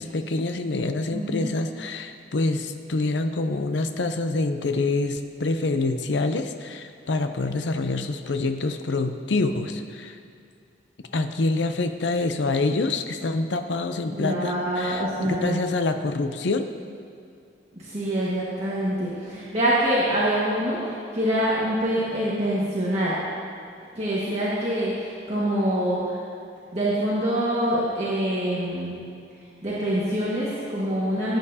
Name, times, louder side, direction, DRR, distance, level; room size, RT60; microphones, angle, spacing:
voice 1, 0.0-10.2 11.1-16.7, left 3 dB, 75° left, 8 dB, 0.6 m, -26 dB
voice 2, 1.1-1.5 14.1-15.6 17.8-23.2 23.9-26.2 26.7-29.0 29.6-31.4, right 1 dB, 35° right, -9 dB, 1.6 m, -25 dB
17.5 x 9.0 x 2.8 m, 2.4 s
head